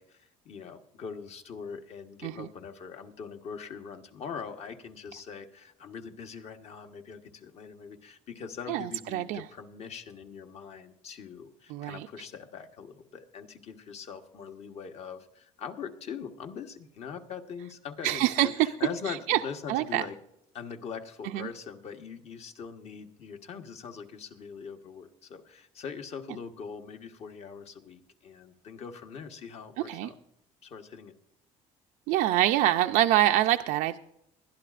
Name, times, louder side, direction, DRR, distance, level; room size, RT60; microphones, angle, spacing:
voice 1, 0.0-20.2 20.5-30.1 30.6-31.1, left 6 dB, 50° left, 6 dB, 1.2 m, -42 dB
voice 2, 8.7-9.4 11.7-12.1 18.0-18.7 19.1-19.4 19.7-20.0 21.3-21.5 29.9-30.1 32.1-34.0, right 14 dB, 80° right, 6 dB, 0.5 m, -25 dB
20.5 x 11.5 x 2.5 m, 0.79 s
cardioid pair, 135°, 14 cm